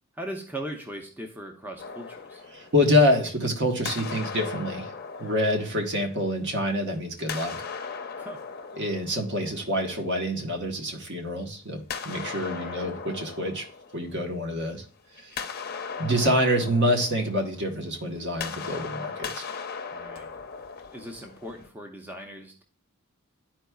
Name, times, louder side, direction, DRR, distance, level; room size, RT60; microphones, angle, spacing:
voice 1, 0.1-2.4 8.2-8.4 12.5-12.9 19.9-20.3 20.9-22.6, right 1 dB, 10° right, 2 dB, 0.6 m, -39 dB
sound 1, 1.8-3.4 3.8-6.6 7.2-10.1 11.9-14.7 15.0-21.7, left 5 dB, 45° left, 0.7 m, -38 dB
voice 2, 2.5-4.9 5.2-7.6 8.8-13.6 13.9-14.8 15.2-15.3 16.0-19.4, left 1 dB, 55° right, 2 dB, 1.2 m, -26 dB
11.5 x 4.6 x 2.3 m, 0.39 s
head